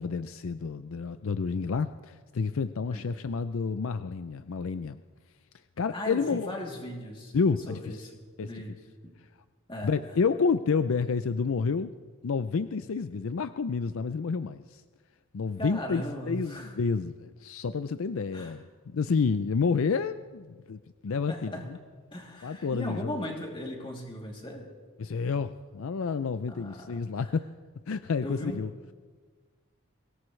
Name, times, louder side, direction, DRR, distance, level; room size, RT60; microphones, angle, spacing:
voice 1, 0.0-5.0 5.8-6.5 7.3-8.0 8.4-8.5 9.8-11.9 12.2-14.8 15.3-21.8 22.4-23.2 25.0-27.5 27.9-28.7, left 5 dB, 65° left, 12 dB, 0.5 m, -29 dB
voice 2, 5.9-7.3 7.7-8.1 8.4-8.7 9.7-9.9 15.6-16.7 18.3-18.5 21.3-21.7 22.1-24.6 26.5-27.3 28.2-28.6, equal, 25° left, -1 dB, 2.9 m, -38 dB
23.0 x 18.0 x 3.3 m, 1.5 s
head